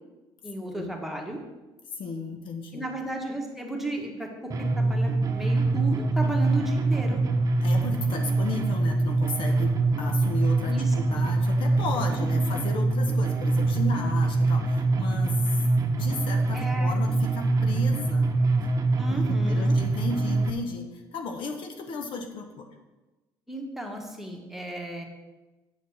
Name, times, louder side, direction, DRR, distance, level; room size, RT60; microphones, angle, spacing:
voice 1, 0.4-1.4 2.7-7.2 10.7-10.9 12.1-12.5 16.5-17.0 19.0-19.8 23.5-25.0, right 1 dB, 5° right, 1 dB, 1.5 m, -34 dB
voice 2, 1.9-2.9 7.6-15.6 15.9-18.3 19.1-22.7, left 4 dB, 60° left, 5 dB, 1.0 m, -35 dB
sound 1, 4.5-20.5, right 2 dB, 35° right, 0.9 m, -24 dB
8.2 x 4.2 x 6.2 m, 1.1 s
supercardioid pair, 90°, 10 cm